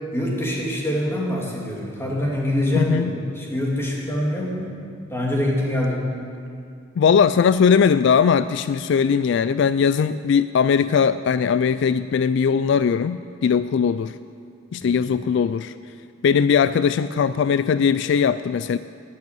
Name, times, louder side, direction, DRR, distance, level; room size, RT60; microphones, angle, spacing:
voice 1, 0.1-4.7 5.1-6.1 14.8-14.9, left 1 dB, 15° left, -3 dB, 2.5 m, -24 dB
voice 2, 2.7-3.1 7.0-14.2 14.7-15.7 16.2-18.8, left 6 dB, 65° left, 13 dB, 0.3 m, -19 dB
11.0 x 9.9 x 9.1 m, 2.3 s
head